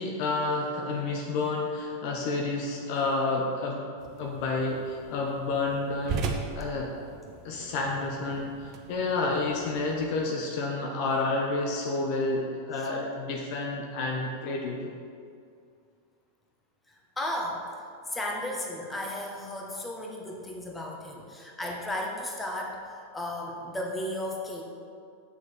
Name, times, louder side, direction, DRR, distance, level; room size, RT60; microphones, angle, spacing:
voice 1, 0.0-3.8 4.2-6.9 7.4-14.9, left 3 dB, 45° left, 0 dB, 1.2 m, -30 dB
sound 1, 4.0-10.3, right 5 dB, 35° right, 1.1 m, -39 dB
voice 2, 16.9-24.6, left 1 dB, 10° left, -1 dB, 1.7 m, -35 dB
8.3 x 6.6 x 6.7 m, 2.3 s
figure-of-eight pair, 90°, 0 cm